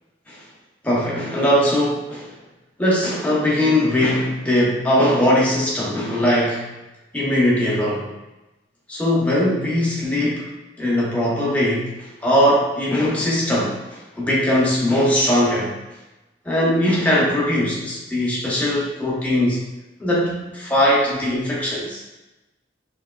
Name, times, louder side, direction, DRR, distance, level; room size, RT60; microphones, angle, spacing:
voice 1, 0.8-2.4 2.8-6.7 7.1-8.1 8.9-10.5 10.8-15.7 16.4-19.6 20.0-22.0, left 1 dB, 10° left, -5 dB, 0.7 m, -20 dB
3.0 x 2.7 x 2.3 m, 1.0 s
head